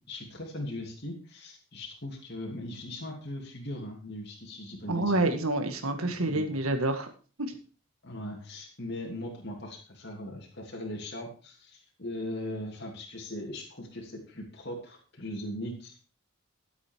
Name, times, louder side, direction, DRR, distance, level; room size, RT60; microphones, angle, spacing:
voice 1, 0.1-5.2 6.0-6.5 8.0-16.0, left 1 dB, 50° left, -1 dB, 3.0 m, -39 dB
voice 2, 4.9-7.1 7.4-7.6, right 2 dB, 75° right, 6 dB, 1.9 m, -28 dB
13.0 x 8.2 x 4.6 m, 0.37 s
head